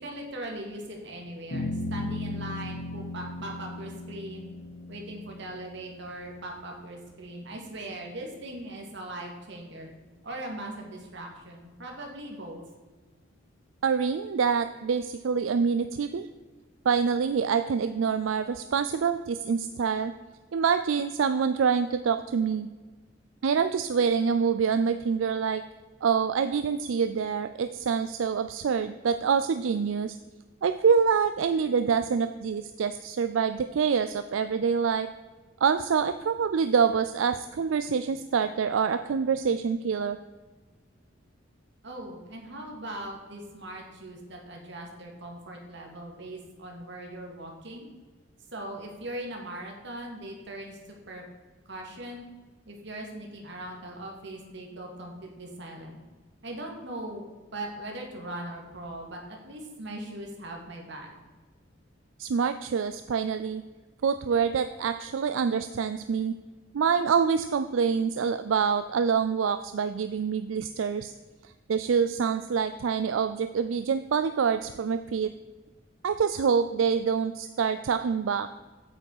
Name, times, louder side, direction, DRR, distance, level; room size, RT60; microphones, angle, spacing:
voice 1, 0.0-4.5 4.9-9.9 10.2-12.6 41.8-47.9 48.5-50.8 51.1-51.2 51.7-52.2 52.6-56.0 56.4-57.3 57.5-61.1, right 1 dB, 65° right, 1 dB, 2.3 m, -40 dB
sound 1, 1.5-8.1, left 2 dB, 80° left, 1.9 m, -37 dB
voice 2, 13.8-16.3 16.9-20.1 20.5-22.7 23.4-25.6 26.0-30.2 30.6-35.1 35.6-40.2 62.2-63.6 64.0-66.3 66.7-71.1 71.7-75.3 76.0-78.5, right 6 dB, 90° right, 10 dB, 0.4 m, -26 dB
8.8 x 7.7 x 4.7 m, 1.3 s
head